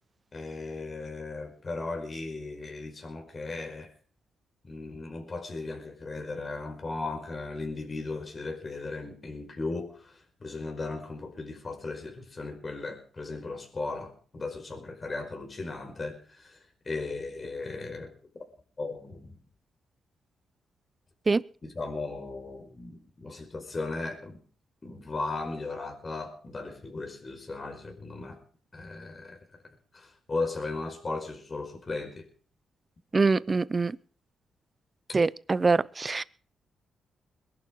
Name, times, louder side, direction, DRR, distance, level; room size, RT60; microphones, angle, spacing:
voice 1, 0.3-3.9 4.6-18.1 18.8-19.4 21.6-24.4 24.8-28.4 28.7-29.4 29.9-32.3, left 3 dB, 35° left, 5.3 m, -36 dB
voice 2, 33.1-33.9 35.1-36.2, right 4 dB, 30° right, 0.8 m, -24 dB
22.5 x 11.5 x 4.8 m
cardioid pair, 85°, 0 cm